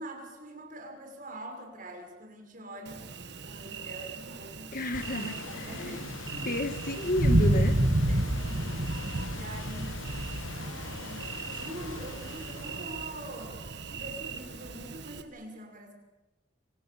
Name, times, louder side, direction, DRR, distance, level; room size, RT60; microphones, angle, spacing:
voice 1, 0.0-3.0 3.4-4.7 5.1-6.5 8.1-8.8 9.3-10.0 10.5-15.9, right 1 dB, 45° right, 3 dB, 6.3 m, -44 dB
Thunder, 2.9-15.2, right 1 dB, 60° right, 1.7 m, -32 dB
voice 2, 4.7-6.0 6.4-7.8, left 1 dB, 45° left, 9 dB, 1.7 m, -32 dB
sound 1, 4.9-13.6, left 4 dB, 85° left, 1.2 m, -43 dB
28.0 x 26.5 x 7.3 m, 1.1 s
head